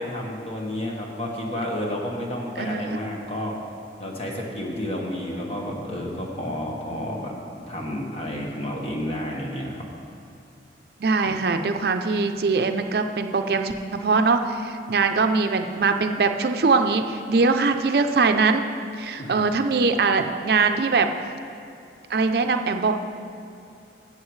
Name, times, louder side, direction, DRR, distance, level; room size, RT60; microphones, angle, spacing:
voice 1, 0.0-3.6 4.0-7.3 7.7-9.8 11.2-11.4 19.2-19.4, left 1 dB, 35° left, -1 dB, 1.3 m, -31 dB
voice 2, 2.6-3.0 6.9-7.0 11.0-18.6 19.0-21.1 22.1-23.0, right 4 dB, 60° right, 6 dB, 0.5 m, -22 dB
14.5 x 7.5 x 3.2 m, 2.5 s
head